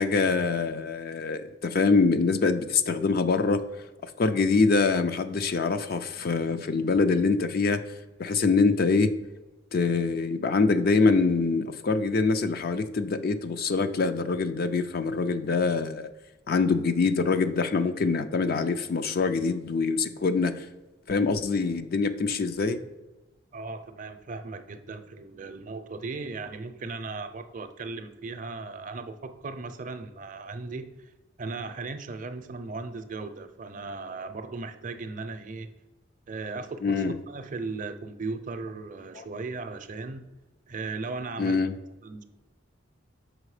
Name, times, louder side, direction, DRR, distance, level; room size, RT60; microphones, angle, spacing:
voice 1, 0.0-3.6 4.2-7.8 8.2-9.1 9.7-16.1 16.5-20.6 21.1-22.8 36.8-37.1 39.2-39.3 41.4-41.7, left 4 dB, 50° left, 10 dB, 0.4 m, -24 dB
voice 2, 23.5-31.1 31.4-35.7 36.3-40.3 40.7-41.6 42.0-42.2, right 3 dB, 45° right, 9 dB, 0.5 m, -37 dB
6.3 x 5.0 x 4.8 m, 1.1 s
head